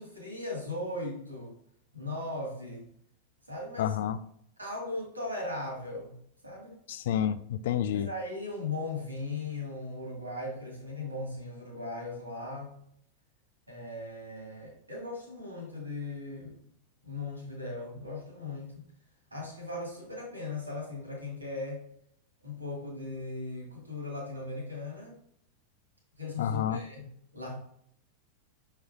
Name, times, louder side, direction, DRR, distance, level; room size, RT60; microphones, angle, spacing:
voice 1, 0.0-1.5 1.9-2.9 3.5-4.0 4.6-6.8 7.9-12.8 13.7-16.6 17.0-18.8 19.3-21.9 22.4-25.2 26.2-27.6, left 2 dB, 80° right, -2 dB, 2.4 m, -38 dB
voice 2, 3.8-4.2 6.9-8.1 26.4-26.8, left 9 dB, 55° left, 14 dB, 0.4 m, -29 dB
6.2 x 5.7 x 2.7 m, 0.68 s
figure-of-eight pair, 90°, 0 cm